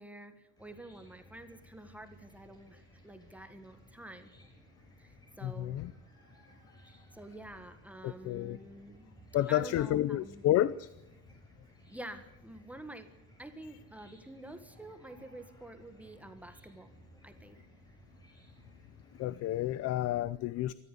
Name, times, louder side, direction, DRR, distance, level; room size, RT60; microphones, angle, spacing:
voice 1, 0.0-4.3 5.0-5.8 7.1-10.4 11.9-13.1 13.4-16.9 17.2-17.6, right 1 dB, 5° right, 8 dB, 1.5 m, -48 dB
Chicken rooster / Cricket, 0.6-19.7, equal, 15° left, 6.0 m, -59 dB
voice 2, 5.4-5.9 8.0-8.6 9.3-10.9 19.2-20.7, left 13 dB, 55° left, 18 dB, 0.6 m, -30 dB
23.0 x 14.0 x 8.4 m, 0.90 s
cardioid pair, 155°, 31 cm